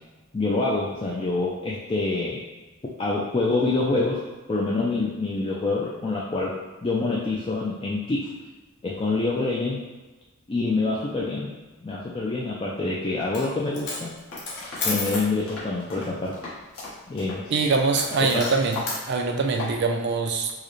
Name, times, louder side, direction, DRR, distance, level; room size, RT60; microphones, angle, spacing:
voice 1, 0.3-2.4 3.0-8.3 8.8-9.8 10.5-11.5 11.8-14.1 14.8-16.4 17.1-17.5 18.2-18.4, left 3 dB, 25° left, -5 dB, 0.3 m, -26 dB
Coin (dropping), 13.2-13.5 13.7-15.3 17.9-19.0, left 3 dB, 50° left, 0.9 m, -32 dB
sound 1, 14.3-18.4 18.7-19.0 19.3-19.8, left 3 dB, 70° left, 1.2 m, -38 dB
voice 2, 17.5-20.5, right 4 dB, 50° right, 4 dB, 0.4 m, -23 dB
4.7 x 2.1 x 3.0 m, 1.2 s
head